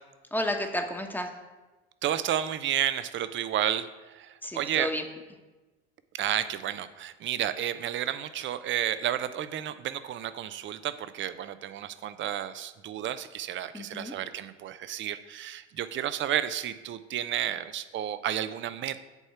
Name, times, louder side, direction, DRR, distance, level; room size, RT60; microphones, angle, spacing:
voice 1, 0.3-1.3 4.4-5.0 13.7-14.1, left 1 dB, 5° left, 4 dB, 1.2 m, -31 dB
voice 2, 2.0-4.9 6.1-19.0, right 11 dB, 35° right, 13 dB, 0.6 m, -31 dB
8.2 x 4.2 x 6.8 m, 1.2 s
hypercardioid pair, 70°, 33 cm